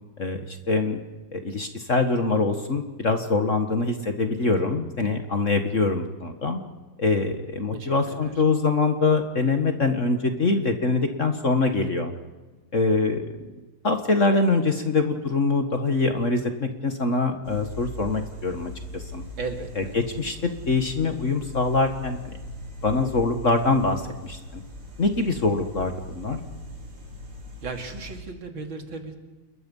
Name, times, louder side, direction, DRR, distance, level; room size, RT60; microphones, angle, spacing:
voice 1, 0.2-1.0 1.3-6.6 7.0-12.1 12.7-13.3 13.8-19.2 19.8-22.3 22.8-24.6 25.0-26.4, left 3 dB, 40° left, 6 dB, 1.7 m, -24 dB
voice 2, 7.7-8.3 19.4-20.0 27.6-29.2, right 3 dB, 65° right, 4 dB, 3.3 m, -36 dB
sound 1, 17.4-28.2, left 1 dB, 85° right, 5.4 m, -40 dB
29.0 x 21.5 x 5.5 m, 1.2 s
omnidirectional pair, 2.4 m